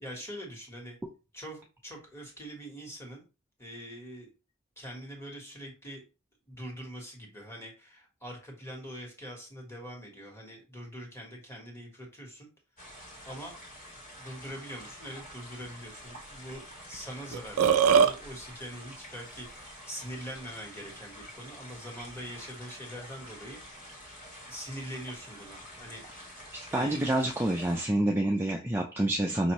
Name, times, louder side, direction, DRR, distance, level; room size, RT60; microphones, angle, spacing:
voice 1, 0.0-1.0 1.3-3.2 3.6-4.3 4.8-6.0 6.5-12.5 13.2-13.5 14.1-23.6 24.5-27.0, equal, 10° left, -1 dB, 1.4 m, -43 dB
sound 1, 12.8-27.9, equal, 45° left, 1.6 m, -48 dB
Burping eructation, 16.9-17.0 17.3-18.1, right 7 dB, 80° right, 0.4 m, -20 dB
voice 2, 26.5-29.5, right 1 dB, 10° right, 0 dB, 0.4 m, -28 dB
5.3 x 2.6 x 3.0 m, 0.31 s
head